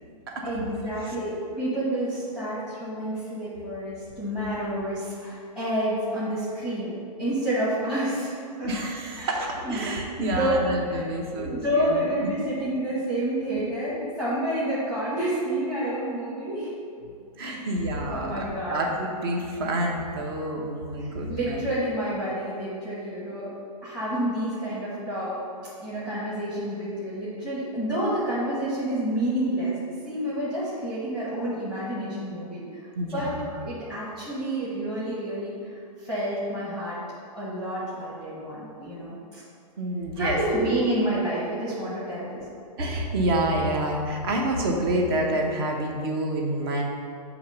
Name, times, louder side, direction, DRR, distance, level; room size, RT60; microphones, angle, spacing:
voice 1, 0.4-6.9 7.2-8.7 9.1-9.9 10.2-10.6 10.9-11.0 11.4-16.7 17.4-17.7 18.1-18.8 21.0-23.5 23.8-25.4 25.8-29.8 30.0-32.9 33.1-33.3 33.6-35.5 36.0-37.0 37.3-39.4 40.1-42.4, right 1 dB, ahead, -11 dB, 1.0 m, -29 dB
voice 2, 8.6-12.3 13.5-13.6 17.4-21.7 32.9-33.5 39.8-40.4 42.8-46.8, right 1 dB, 35° right, 0 dB, 0.9 m, -28 dB
7.2 x 2.9 x 5.5 m, 2.4 s
hypercardioid pair, 160°, 21 cm